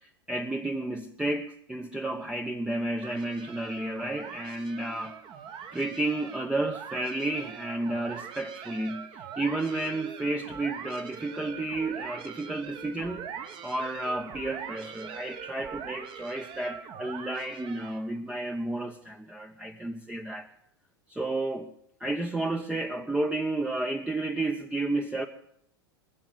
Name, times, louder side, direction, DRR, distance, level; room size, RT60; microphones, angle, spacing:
voice 1, 0.0-5.2 5.7-13.3 13.6-20.5 21.1-21.7 22.0-25.3, right 2 dB, 5° right, 4 dB, 1.0 m, -32 dB
sound 1, 3.0-18.2, right 7 dB, 40° right, 1.7 m, -42 dB
20.0 x 7.3 x 9.1 m, 0.70 s
hypercardioid pair, 90°, 13 cm